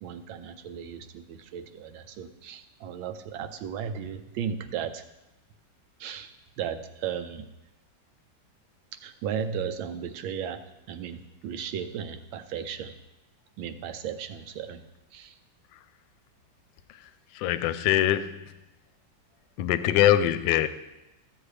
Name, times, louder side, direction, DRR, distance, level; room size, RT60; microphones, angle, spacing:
voice 1, 0.0-5.0 6.0-7.5 9.0-13.0 13.6-14.8 15.1-15.4, right 8 dB, 85° right, 9 dB, 1.5 m, -35 dB
voice 2, 17.3-18.4 19.6-20.7, left 12 dB, 75° left, 12 dB, 1.2 m, -23 dB
13.5 x 7.4 x 3.3 m, 0.96 s
omnidirectional pair, 2.1 m